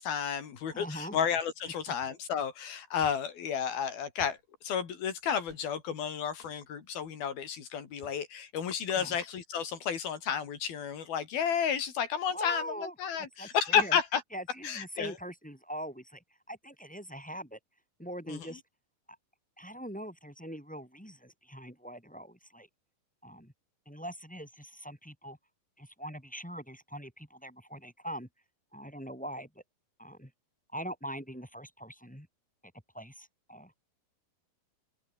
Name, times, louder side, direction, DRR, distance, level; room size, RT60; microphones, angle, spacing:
voice 1, 0.0-4.4 4.6-14.2 14.6-15.2 18.3-18.6, left 7 dB, 90° left, 5.1 m, -32 dB
voice 2, 0.7-1.2 1.9-2.0 8.9-9.2 12.3-14.0 14.3-17.6 18.0-18.6 19.6-22.7 23.2-23.5 23.9-25.4 25.8-28.3 28.7-29.5 30.0-30.3 30.7-32.3 32.9-33.7, equal, ahead, 3.5 m, -42 dB
sound 1, 2.0-2.2 3.0-3.3 4.2-4.4 5.5-5.7 6.4-6.6 8.0-8.2, right 6 dB, 60° right, 5.0 m, -53 dB
open air
omnidirectional pair, 4.2 m